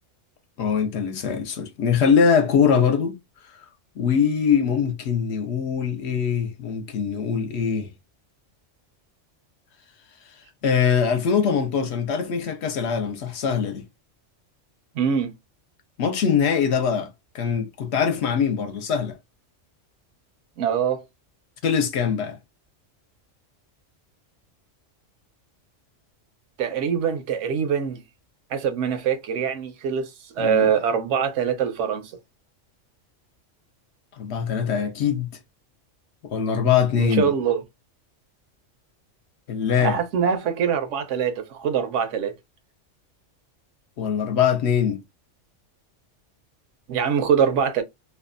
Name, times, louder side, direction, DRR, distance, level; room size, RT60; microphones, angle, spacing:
voice 1, 0.6-3.2 4.0-7.9 10.6-13.8 16.0-17.1 17.3-19.2 21.6-22.4 30.4-30.7 34.2-35.3 36.2-37.3 39.5-40.0 44.0-45.0, left 7 dB, 70° left, 0.8 m, -22 dB
voice 2, 15.0-15.3 20.6-21.0 26.6-28.0 28.5-30.1 30.4-32.1 37.0-37.6 39.8-42.3 46.9-47.8, right 7 dB, 75° right, 0.9 m, -23 dB
2.6 x 2.2 x 2.4 m
omnidirectional pair, 1.3 m